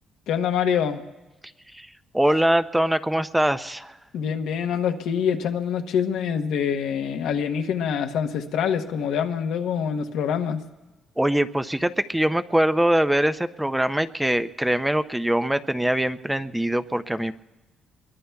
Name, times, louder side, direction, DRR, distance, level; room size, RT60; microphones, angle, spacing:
voice 1, 0.3-1.0 4.1-10.6, left 7 dB, 85° left, 6 dB, 1.0 m, -25 dB
voice 2, 1.7-4.0 11.2-17.3, right 1 dB, 5° right, 11 dB, 0.5 m, -23 dB
25.5 x 22.0 x 2.3 m, 1.2 s
cardioid pair, 90°, 0 cm